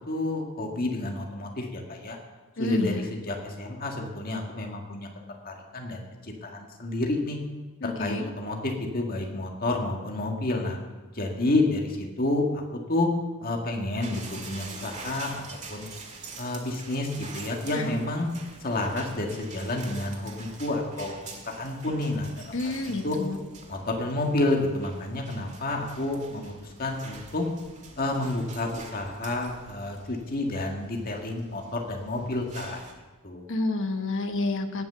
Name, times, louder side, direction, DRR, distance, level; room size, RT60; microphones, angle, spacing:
voice 1, 0.1-2.2 2.6-5.1 5.5-7.4 7.8-10.8 11.1-13.1 13.4-15.4 15.7-15.9 16.4-18.3 18.6-23.2 23.7-27.4 28.0-32.8 33.2-33.5, left 2 dB, 40° left, 1 dB, 1.9 m, -30 dB
voice 2, 2.6-3.1 7.8-8.3 17.7-18.0 22.5-23.4 33.5-34.9, left 2 dB, 60° left, 6 dB, 1.1 m, -29 dB
sound 1, 14.0-32.9, right 3 dB, 35° right, 1.8 m, -46 dB
18.0 x 6.0 x 6.9 m, 1.2 s
head